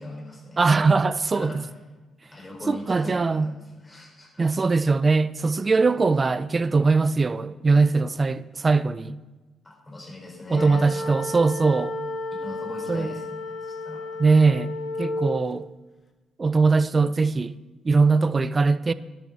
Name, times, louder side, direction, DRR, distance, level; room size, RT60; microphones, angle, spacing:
voice 1, 0.0-0.6 1.3-1.6 2.3-4.4 9.6-11.1 12.4-14.2, left 2 dB, 20° left, 4.7 m, -40 dB
voice 2, 0.6-1.6 2.7-3.5 4.4-9.2 10.5-12.0 12.9-13.2 14.2-15.7 16.4-17.6 17.8-18.9, right 4 dB, 30° right, 0.4 m, -21 dB
sound 1, 10.5-15.5, left 1 dB, 40° left, 1.4 m, -32 dB
12.0 x 11.5 x 4.1 m
cardioid pair, 90°, 0 cm